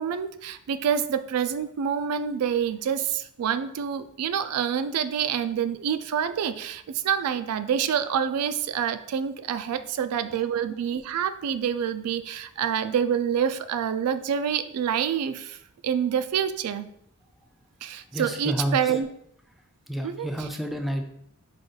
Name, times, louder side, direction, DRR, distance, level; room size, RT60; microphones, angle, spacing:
voice 1, 0.0-15.6 15.8-16.9 17.8-19.1 20.0-20.3, right 8 dB, 85° right, 13 dB, 0.3 m, -27 dB
voice 2, 18.1-18.9 19.9-21.0, equal, ahead, 4 dB, 0.3 m, -30 dB
4.9 x 2.3 x 3.9 m, 0.73 s
head